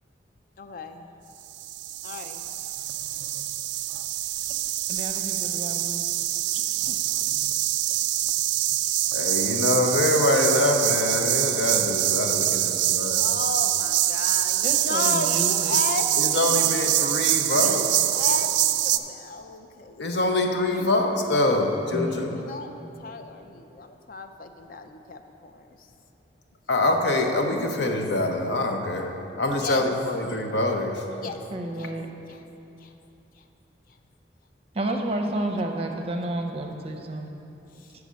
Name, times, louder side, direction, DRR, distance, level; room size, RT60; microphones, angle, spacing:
voice 1, 0.6-1.1 2.0-2.4 6.7-7.3 12.9-17.0 17.5-20.0 20.4-20.9 22.3-25.9 28.7-28.9 29.5-29.9 31.2-31.4 31.8-31.9 32.3-32.4 32.8-32.9 33.4-33.5 37.7-37.9, left 3 dB, 50° left, 7 dB, 0.4 m, -35 dB
sound 1, 1.5-19.0, right 13 dB, 85° right, 0.3 m, -25 dB
voice 2, 4.9-6.1 6.8-6.9 14.6-15.8 21.9-22.4 31.5-32.1 34.7-37.3, right 1 dB, 35° right, 3 dB, 0.6 m, -31 dB
voice 3, 9.1-13.2 16.2-17.9 20.0-22.4 26.7-31.0, left 2 dB, 75° left, 3 dB, 0.8 m, -24 dB
8.2 x 4.8 x 6.3 m, 2.9 s
head